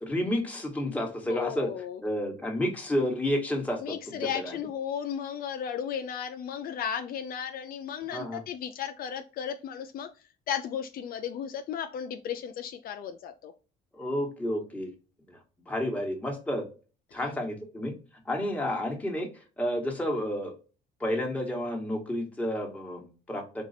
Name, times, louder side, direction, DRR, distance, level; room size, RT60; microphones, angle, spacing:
voice 1, 0.0-1.7 2.0-4.6 8.1-8.4 13.9-14.9 15.3-15.4 15.7-16.7 17.1-17.9 18.2-20.5 21.0-23.7, left 1 dB, 10° left, 0 dB, 1.5 m, -31 dB
voice 2, 1.3-2.0 3.8-10.1 10.5-13.5 17.1-17.2, left 8 dB, 60° left, 7 dB, 0.5 m, -35 dB
4.6 x 2.4 x 4.1 m, 0.34 s
cardioid pair, 110°, 17 cm